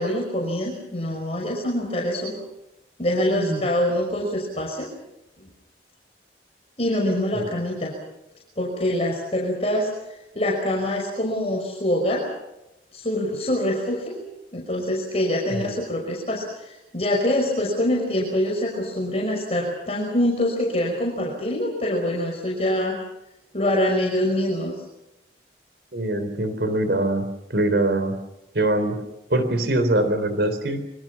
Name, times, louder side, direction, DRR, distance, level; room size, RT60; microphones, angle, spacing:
voice 1, 0.0-2.4 3.0-4.9 5.4-5.5 6.8-7.9 8.6-9.9 10.3-12.3 12.9-14.2 14.5-23.0 23.5-24.8, left 1 dB, 35° left, -1 dB, 5.7 m, -25 dB
voice 2, 3.3-3.6 7.3-7.5 15.5-15.7 25.9-28.2 28.5-29.0 29.3-30.8, right 1 dB, 70° right, 9 dB, 3.8 m, -23 dB
28.0 x 25.5 x 6.0 m, 0.90 s
head